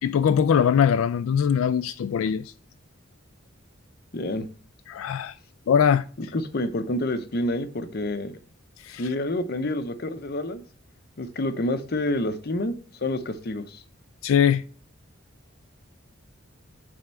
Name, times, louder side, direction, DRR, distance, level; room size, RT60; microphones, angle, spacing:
voice 1, 0.0-2.5 4.9-5.4 5.7-6.0 8.8-9.1 14.2-14.6, left 7 dB, 85° left, 0.3 m, -21 dB
voice 2, 4.1-4.5 6.2-8.4 8.9-10.6 11.2-13.8, left 1 dB, 50° left, 0.7 m, -28 dB
8.7 x 3.5 x 4.4 m
head